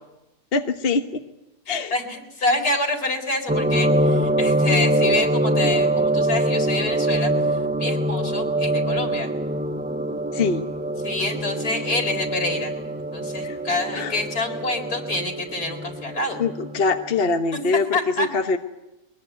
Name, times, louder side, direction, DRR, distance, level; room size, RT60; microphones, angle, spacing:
voice 1, 0.5-1.2 1.7-1.9 10.3-10.7 13.4-13.6 13.9-14.2 16.4-18.6, left 4 dB, 40° left, 6 dB, 1.3 m, -23 dB
voice 2, 1.7-7.3 7.8-9.3 11.0-12.7 13.1-16.4 17.9-18.3, left 2 dB, 75° left, 3 dB, 4.7 m, -27 dB
sound 1, 3.5-17.2, right 1 dB, 15° right, 0.3 m, -24 dB
23.0 x 20.5 x 9.4 m, 0.94 s
omnidirectional pair, 1.7 m